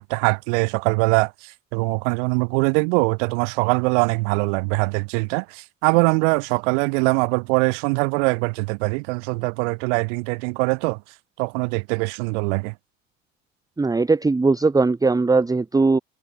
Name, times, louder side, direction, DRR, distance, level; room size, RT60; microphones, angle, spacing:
voice 1, 0.0-11.0 11.4-12.7, right 33 dB, 65° right, 2.8 m, -22 dB
voice 2, 13.8-16.0, right 3 dB, 10° right, 0.8 m, -19 dB
figure-of-eight pair, 60°, 38 cm